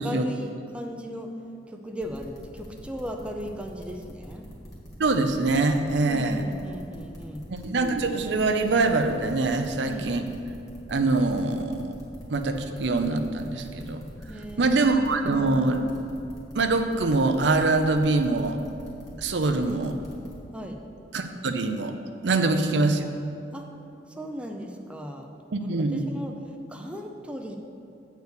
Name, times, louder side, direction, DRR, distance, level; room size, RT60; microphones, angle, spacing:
voice 1, 0.0-1.3 1.7-4.5 6.1-7.5 9.9-10.1 14.3-15.0 20.5-20.8 22.5-22.6 23.5-23.7 24.1-25.3 25.6-26.3 26.7-27.6, equal, 5° right, 2 dB, 0.5 m, -37 dB
sound 1, 2.0-20.3, equal, 20° left, 1.8 m, -44 dB
voice 2, 5.0-6.4 7.6-10.3 10.9-11.9 12.3-14.0 14.6-15.8 16.5-18.6 19.2-20.0 21.1-21.9 22.2-23.0 25.5-26.1, right 3 dB, 70° right, 6 dB, 0.6 m, -24 dB
8.0 x 4.6 x 6.8 m, 2.7 s
head